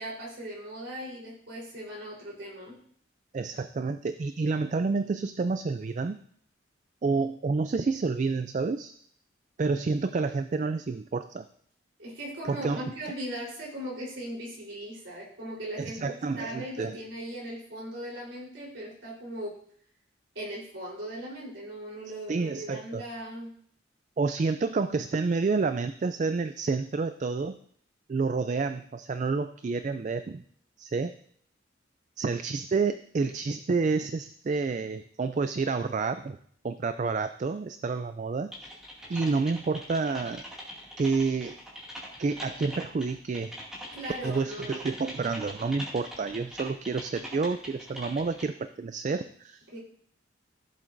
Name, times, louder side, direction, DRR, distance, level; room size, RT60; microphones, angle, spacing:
voice 1, 0.0-2.8 12.0-19.6 20.3-23.5 43.9-44.8 49.7-49.8, right 1 dB, 70° right, -5 dB, 3.8 m, -39 dB
voice 2, 3.3-6.2 7.0-8.9 9.6-11.5 12.4-12.9 15.8-17.0 22.3-23.0 24.2-27.6 28.1-30.4 30.8-31.1 32.2-36.4 36.6-38.8 39.1-40.4 41.0-41.6 42.2-43.5 44.2-49.6, right 4 dB, 40° right, 10 dB, 0.3 m, -29 dB
Typing, 38.5-48.4, equal, 5° right, 2.2 m, -42 dB
15.0 x 7.6 x 2.6 m, 0.62 s
head